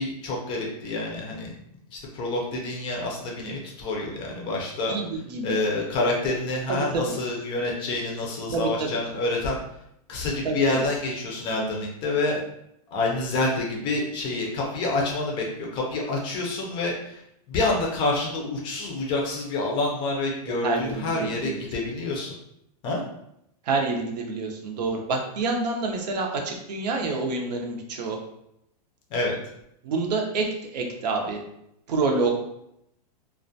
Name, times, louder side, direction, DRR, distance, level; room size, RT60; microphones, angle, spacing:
voice 1, 0.0-1.5 1.9-4.9 5.4-9.6 10.1-12.4 12.9-17.2 17.5-22.3 22.8-23.0 29.1-29.4, left 2 dB, 25° left, -1 dB, 0.4 m, -27 dB
voice 2, 4.9-5.6 6.7-7.2 8.5-9.0 10.4-10.9 20.5-21.6 23.6-28.2 29.8-31.4 31.9-32.4, right 3 dB, 85° right, 2 dB, 0.6 m, -27 dB
2.3 x 2.1 x 2.6 m, 0.78 s
supercardioid pair, 155°, 20 cm